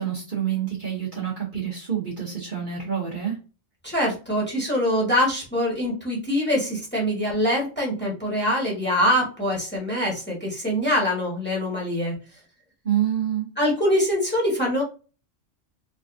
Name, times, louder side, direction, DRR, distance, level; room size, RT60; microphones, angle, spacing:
voice 1, 0.0-3.4 12.8-13.5, right 9 dB, 45° right, -4 dB, 1.1 m, -27 dB
voice 2, 3.8-12.1 13.6-14.8, equal, 10° left, -3 dB, 1.5 m, -24 dB
3.8 x 3.5 x 2.6 m, 0.34 s
omnidirectional pair, 1.3 m